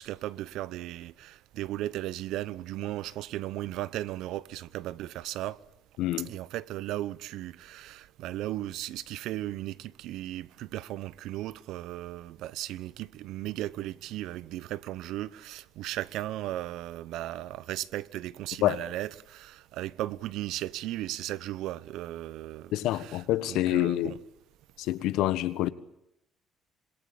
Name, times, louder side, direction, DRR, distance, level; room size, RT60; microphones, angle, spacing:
voice 1, 0.0-5.6 6.2-23.2 23.5-24.2, right 14 dB, 75° right, 0.9 m, -36 dB
voice 2, 6.0-6.3 18.6-18.8 22.7-24.2 24.8-25.7, left 14 dB, 85° left, 1.5 m, -27 dB
26.5 x 21.5 x 8.9 m
cardioid pair, 165°, 0 cm